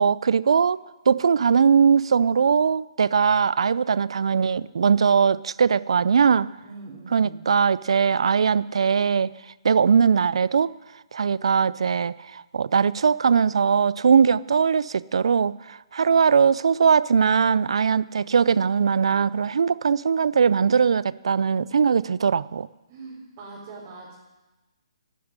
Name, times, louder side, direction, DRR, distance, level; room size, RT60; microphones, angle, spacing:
voice 1, 0.0-6.5 7.1-9.3 9.6-10.7 11.1-22.7, right 6 dB, 70° right, 20 dB, 0.5 m, -20 dB
voice 2, 6.6-7.4 22.9-24.2, right 3 dB, 35° right, -6 dB, 4.3 m, -42 dB
12.0 x 9.4 x 9.7 m, 1.1 s
hypercardioid pair, 145°, 3 cm